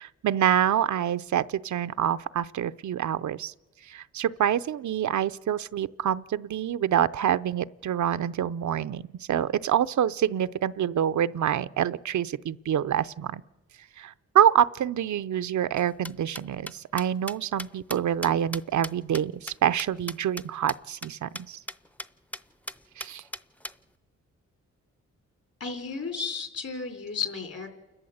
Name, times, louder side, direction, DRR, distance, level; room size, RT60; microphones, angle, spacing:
voice 1, 0.0-3.5 3.8-13.4 14.0-21.6 23.0-23.2, right 10 dB, 75° right, 0.6 m, -26 dB
sound 1, 15.8-20.4 20.7-20.8 21.0-21.1 21.3-21.4 21.7-22.1 22.3-22.4 22.7-23.7, left 1 dB, 5° left, 0.6 m, -37 dB
voice 2, 25.6-27.7, left 5 dB, 55° left, 3.9 m, -33 dB
29.0 x 12.5 x 7.9 m
wide cardioid pair, 110°, 29 cm